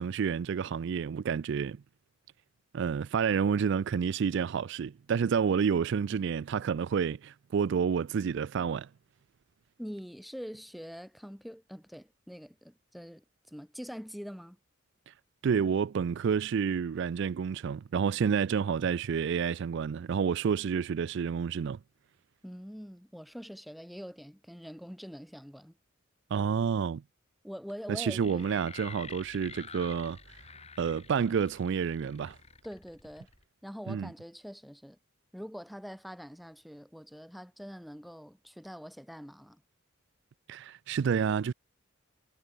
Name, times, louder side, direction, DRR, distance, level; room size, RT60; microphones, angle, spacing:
voice 1, 0.0-1.8 2.7-8.9 15.4-21.8 26.3-27.0 27.9-30.2 30.8-32.4 33.9-34.1 40.5-41.5, right 6 dB, 60° right, 0.3 m, -29 dB
voice 2, 9.8-14.6 22.4-25.8 27.4-28.5 32.6-33.3 33.6-35.0 35.3-39.6, equal, ahead, 1.6 m, -44 dB
sound 1, 28.2-33.4, left 5 dB, 30° left, 5.9 m, -49 dB
head